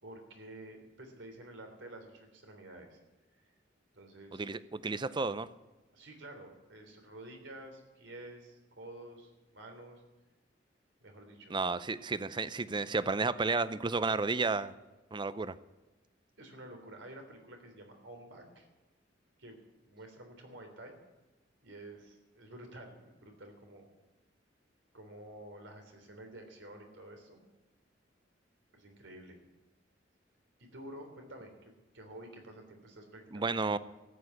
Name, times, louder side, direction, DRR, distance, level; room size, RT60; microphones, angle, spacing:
voice 1, 0.0-3.0 3.9-4.5 5.9-10.0 11.0-11.6 16.4-18.7 19.4-19.6 19.9-21.0 21.6-23.9 24.9-27.4 28.7-29.4 30.6-33.8, right 1 dB, 80° right, 4 dB, 3.4 m, -50 dB
voice 2, 4.3-5.5 11.5-14.7 15.1-15.5 33.3-33.8, right 3 dB, 25° right, 15 dB, 0.5 m, -32 dB
14.0 x 8.8 x 9.5 m, 1.1 s
head